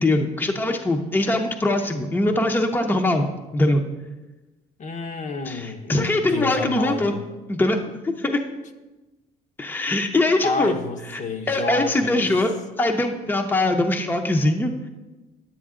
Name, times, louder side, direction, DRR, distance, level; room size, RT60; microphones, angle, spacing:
voice 1, 0.0-3.3 3.5-3.8 5.4-7.2 7.5-8.4 9.6-10.7 11.1-11.2 11.5-14.9, left 2 dB, 10° left, 4 dB, 0.7 m, -22 dB
voice 2, 4.8-7.2 10.4-12.3, left 3 dB, 45° left, 5 dB, 0.8 m, -29 dB
9.8 x 8.6 x 3.7 m, 1.1 s
cardioid pair, 110°, 17 cm